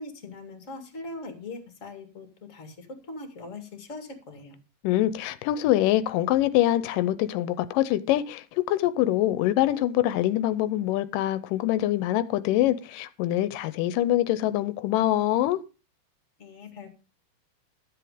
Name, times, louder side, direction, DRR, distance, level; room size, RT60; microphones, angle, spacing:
voice 1, 0.0-4.6 16.4-16.9, left 2 dB, 25° left, 2.1 m, -41 dB
voice 2, 4.8-15.6, left 14 dB, 90° left, 2.3 m, -24 dB
12.5 x 7.8 x 4.9 m
omnidirectional pair, 3.8 m